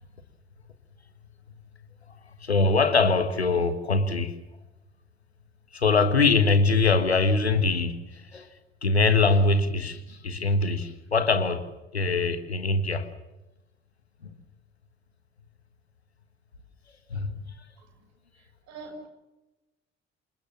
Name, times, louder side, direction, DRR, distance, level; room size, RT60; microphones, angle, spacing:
voice 1, 2.4-4.3 5.7-8.0 8.3-8.5 8.8-11.6 11.9-13.1 17.1-17.4, left 3 dB, 85° left, 1.6 m, -23 dB
voice 2, 18.4-19.1, right 3 dB, 60° right, 6.5 m, -44 dB
27.5 x 20.5 x 7.3 m
figure-of-eight pair, 50°, 31 cm